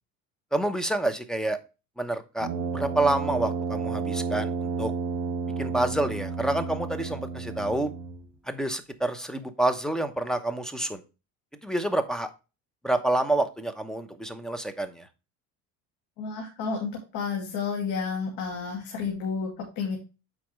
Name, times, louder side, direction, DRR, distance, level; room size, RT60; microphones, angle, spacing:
voice 1, 0.5-1.6 2.0-2.5 2.7-4.9 5.6-7.9 8.5-11.0 11.6-12.3 12.8-15.1, right 1 dB, ahead, 10 dB, 0.9 m, -28 dB
Brass instrument, 2.4-8.3, right 4 dB, 50° right, 1.9 m, -31 dB
voice 2, 16.2-20.0, left 5 dB, 65° left, 0 dB, 2.4 m, -31 dB
8.4 x 5.1 x 3.2 m, 0.29 s
supercardioid pair, 115°, 37 cm